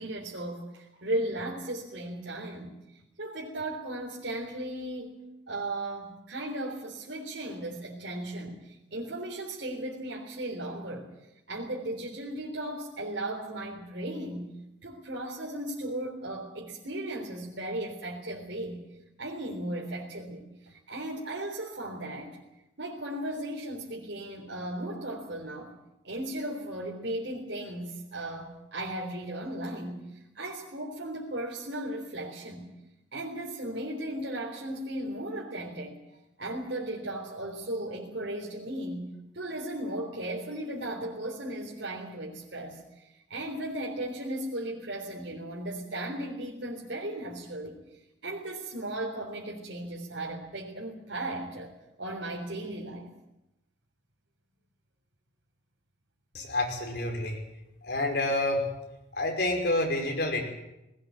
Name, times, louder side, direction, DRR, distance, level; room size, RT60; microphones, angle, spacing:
voice 1, 0.0-2.7 3.2-11.1 11.5-14.5 14.8-18.8 19.2-22.4 22.8-25.7 26.0-32.7 33.1-36.0 36.4-47.8 48.2-51.7 52.0-53.1, right 1 dB, 70° right, -3 dB, 3.8 m, -36 dB
voice 2, 56.3-57.4 57.8-58.6 59.1-60.4, left 2 dB, 60° left, 2 dB, 5.5 m, -28 dB
20.0 x 18.0 x 9.3 m, 0.92 s
head